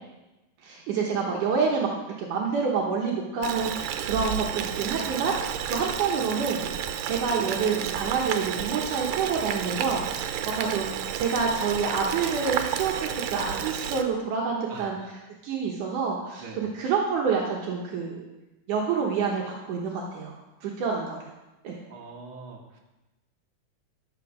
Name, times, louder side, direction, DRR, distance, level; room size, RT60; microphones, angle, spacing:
voice 1, 0.6-6.6 7.0-10.9 11.1-18.3 18.7-21.3 21.6-21.8, right 5 dB, 70° right, -2 dB, 2.6 m, -28 dB
Boiling, 3.4-14.0, right 9 dB, 90° right, 2.4 m, -31 dB
voice 2, 14.7-15.1 16.4-16.7 21.9-22.8, right 3 dB, 55° right, -1 dB, 2.6 m, -43 dB
12.5 x 7.2 x 6.2 m, 1.0 s
omnidirectional pair, 3.9 m